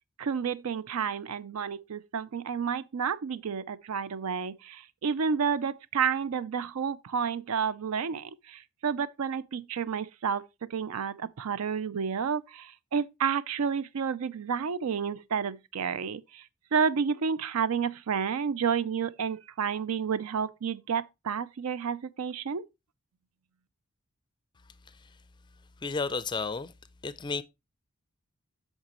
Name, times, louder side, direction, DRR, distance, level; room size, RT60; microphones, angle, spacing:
voice 1, 0.2-16.4 16.7-22.7, right 6 dB, 80° right, 0.5 m, -30 dB
voice 2, 25.8-26.7 27.0-27.4, left 4 dB, 20° left, 0.4 m, -32 dB
8.9 x 6.3 x 3.0 m
head